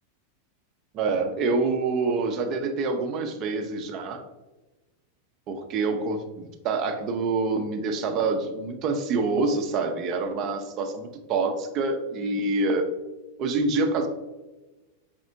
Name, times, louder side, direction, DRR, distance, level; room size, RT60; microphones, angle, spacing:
voice 1, 0.9-4.2 5.5-12.9 13.4-14.1, right 3 dB, 40° right, 5 dB, 0.5 m, -26 dB
4.9 x 3.5 x 2.6 m, 1.1 s
figure-of-eight pair, 90°, 0 cm